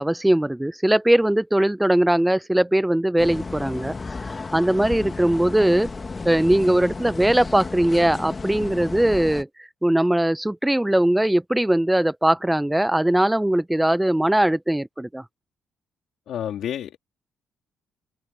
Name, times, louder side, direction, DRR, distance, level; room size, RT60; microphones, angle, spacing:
voice 1, 0.0-3.9 4.5-5.9 6.2-9.5 9.8-15.2, right 1 dB, 5° right, 0.7 m, -20 dB
sound 1, 3.2-9.4, left 3 dB, 30° left, 1.7 m, -33 dB
voice 2, 16.3-17.0, left 10 dB, 75° left, 3.5 m, -29 dB
open air
cardioid pair, 90°, 0 cm